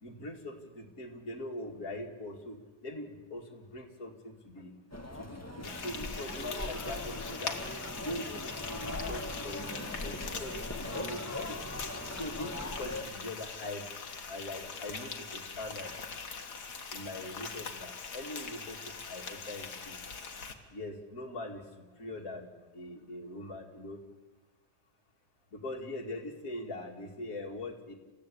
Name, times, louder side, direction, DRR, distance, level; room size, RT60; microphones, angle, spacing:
voice 1, 0.0-4.7 5.2-7.6 8.0-11.6 12.1-13.8 14.3-15.9 16.9-20.0 20.7-21.6 22.0-22.5 22.7-24.0 25.5-27.9, left 1 dB, 55° left, 0 dB, 2.8 m, -42 dB
sound 1, 4.9-13.0, left 1 dB, 10° left, 1.8 m, -40 dB
Frying (food), 5.6-20.5, left 5 dB, 70° left, 2.3 m, -42 dB
28.0 x 15.5 x 8.6 m, 1.3 s
omnidirectional pair, 1.8 m